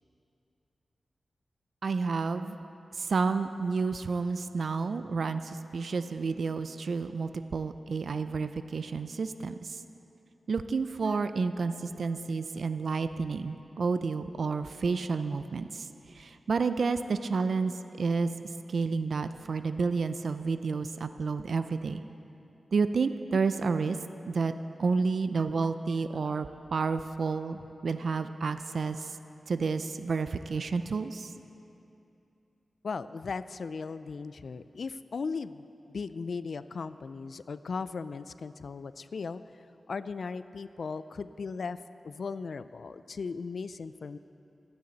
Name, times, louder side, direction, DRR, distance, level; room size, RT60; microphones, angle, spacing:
voice 1, 1.8-2.6 2.9-9.8 10.5-18.3 18.7-22.0 22.7-24.0 24.3-24.5 24.8-29.2 29.5-31.3, right 4 dB, 75° right, 10 dB, 0.4 m, -30 dB
voice 2, 32.8-39.4 39.9-41.8 42.0-44.2, left 4 dB, 75° left, 14 dB, 0.4 m, -37 dB
26.5 x 9.6 x 4.0 m, 2.8 s
cardioid pair, 55°, 0 cm